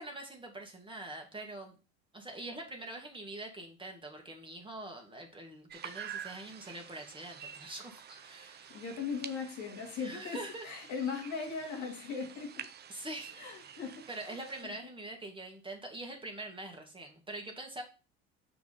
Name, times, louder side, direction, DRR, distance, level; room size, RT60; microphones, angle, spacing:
voice 1, 0.0-1.7 2.1-8.8 10.0-10.7 12.9-13.8 14.1-17.8, right 2 dB, 15° right, 1.9 m, -44 dB
sound 1, 5.7-14.6, right 8 dB, 30° right, 0.6 m, -48 dB
voice 2, 8.7-12.7 13.3-14.7, left 5 dB, 65° left, 2.3 m, -39 dB
6.1 x 4.7 x 4.1 m
supercardioid pair, 90°, 32 cm